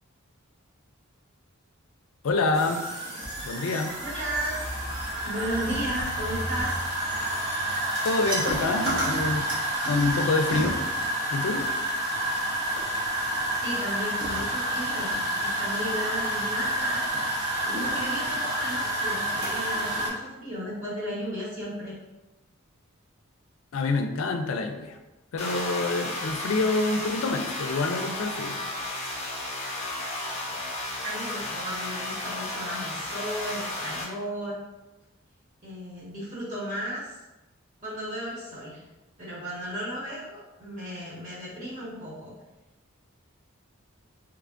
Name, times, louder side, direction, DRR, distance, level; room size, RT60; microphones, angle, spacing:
voice 1, 2.2-2.8 3.4-3.9 8.0-9.5 9.9-10.8 11.3-11.7 23.7-25.0 25.3-28.6, left 3 dB, 75° left, 6 dB, 0.4 m, -27 dB
sound 1, 2.5-20.1, right 1 dB, 70° right, 1.1 m, -29 dB
voice 2, 4.0-4.5 5.2-6.8 13.5-17.1 17.6-22.0 31.0-34.6 35.6-37.2 37.8-38.8 39.2-42.3, equal, 35° right, -8 dB, 1.1 m, -34 dB
sound 2, 25.4-34.0, left 2 dB, 30° left, 0.7 m, -33 dB
3.4 x 3.2 x 2.5 m, 1.0 s
head